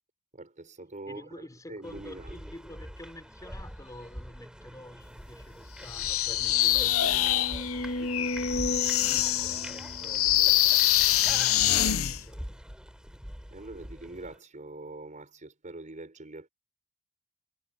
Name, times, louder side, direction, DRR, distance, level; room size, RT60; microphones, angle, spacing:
voice 1, 0.3-2.4 8.0-8.4 13.5-16.5, right 2 dB, 35° right, 4.2 m, -44 dB
voice 2, 1.1-7.6 8.4-12.5, left 1 dB, 15° left, 5.8 m, -48 dB
sound 1, 1.8-14.4, equal, 5° right, 5.3 m, -43 dB
sound 2, 5.3-5.4 5.8-5.9 6.4-10.6 11.3-11.4, left 1 dB, 55° left, 2.1 m, -35 dB
sound 3, 5.9-12.2, left 13 dB, 70° left, 0.8 m, -25 dB
head